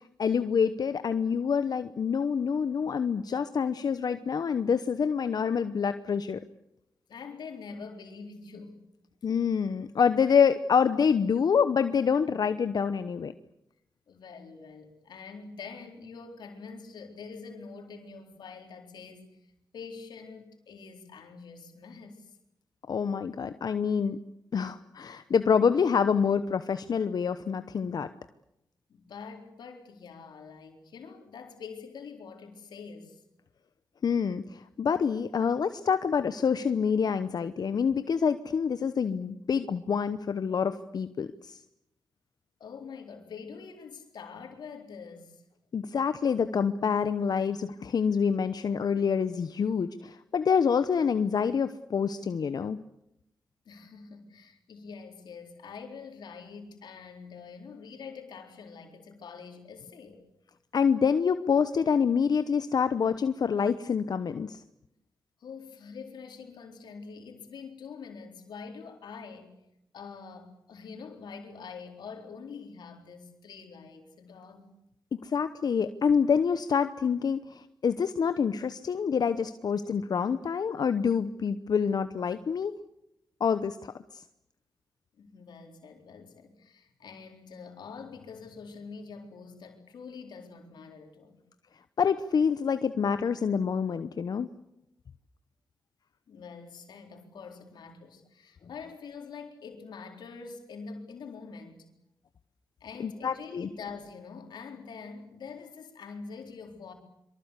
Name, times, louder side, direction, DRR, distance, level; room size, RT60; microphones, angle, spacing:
voice 1, 0.0-6.4 9.2-13.3 22.9-24.2 24.5-28.1 34.0-41.6 45.7-52.8 60.7-64.6 75.1-82.7 83.4-84.2 92.0-94.5 103.0-103.7, left 6 dB, 65° left, 11 dB, 1.0 m, -27 dB
voice 2, 7.1-8.8 14.1-19.3 19.7-22.4 28.9-33.2 42.6-45.4 53.7-60.2 65.4-69.5 69.9-74.8 85.2-91.4 96.3-101.9 102.8-106.9, left 5 dB, 80° left, 4 dB, 4.0 m, -45 dB
24.5 x 24.0 x 8.3 m, 0.83 s
cardioid pair, 55°, 7 cm